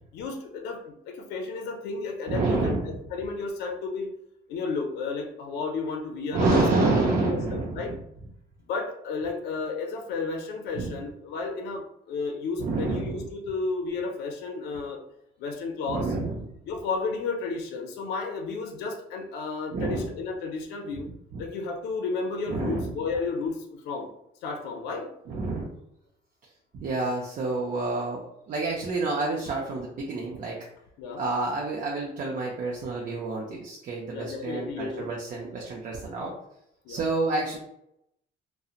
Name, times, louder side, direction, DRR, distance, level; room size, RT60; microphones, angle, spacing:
voice 1, 0.1-4.1 4.5-7.9 8.6-15.0 15.4-16.1 16.7-21.1 21.4-24.1 24.4-25.1 31.0-31.2 34.1-35.1 36.2-36.3 36.8-37.0, left 4 dB, 80° left, 3 dB, 0.5 m, -32 dB
voice 2, 2.3-2.9 6.3-7.9 10.8-11.0 12.6-13.2 15.9-16.5 19.7-20.1 21.3-21.4 22.5-22.9 25.3-25.7 26.7-30.6 31.2-36.3 36.9-37.6, right 3 dB, 50° right, -2 dB, 0.5 m, -28 dB
2.8 x 2.0 x 2.4 m, 0.78 s
cardioid pair, 110°, 17 cm